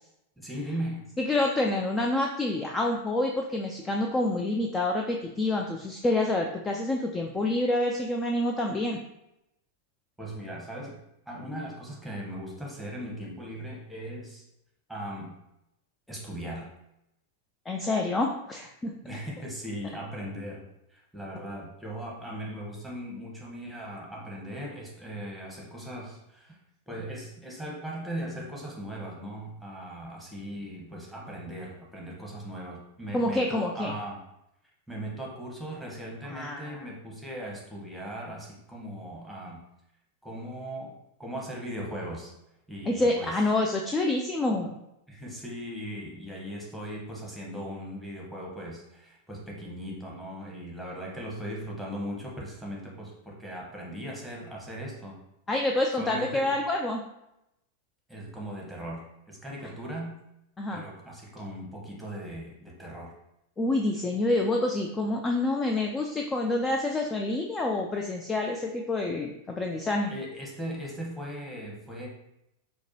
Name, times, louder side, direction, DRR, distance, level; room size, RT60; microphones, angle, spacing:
voice 1, 0.4-1.1 10.2-11.0 11.3-14.5 14.9-15.4 16.1-16.7 19.0-20.6 20.9-26.6 26.9-34.2 34.9-39.6 40.2-40.9 41.2-42.3 42.7-43.3 45.1-55.2 55.9-56.6 58.1-60.1 60.7-63.1 70.1-72.1, equal, ahead, -3 dB, 1.0 m, -38 dB
voice 2, 1.2-9.0 17.7-19.0 33.1-33.9 36.3-36.9 42.9-44.7 55.5-57.1 60.6-60.8 63.6-70.1, left 2 dB, 15° left, 1 dB, 0.3 m, -27 dB
4.6 x 2.2 x 2.7 m, 0.86 s
figure-of-eight pair, 95°, 0 cm